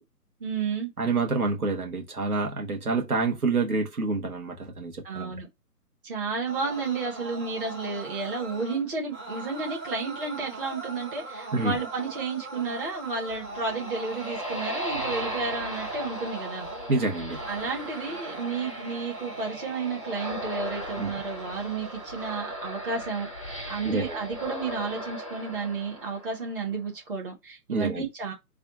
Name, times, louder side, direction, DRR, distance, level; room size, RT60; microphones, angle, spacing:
voice 1, 0.4-0.9 5.0-5.5 6.0-16.7 17.5-28.3, right 4 dB, 35° right, 1.4 m, -32 dB
voice 2, 1.0-5.3 11.5-11.7 16.9-17.4 21.0-21.1 23.8-24.2 27.7-28.0, right 3 dB, 65° right, 1.4 m, -27 dB
sound 1, 6.5-22.6, right 3 dB, 10° right, 0.8 m, -41 dB
sound 2, 13.2-26.7, equal, 20° left, 0.6 m, -37 dB
3.3 x 2.4 x 3.8 m
figure-of-eight pair, 145°, 48 cm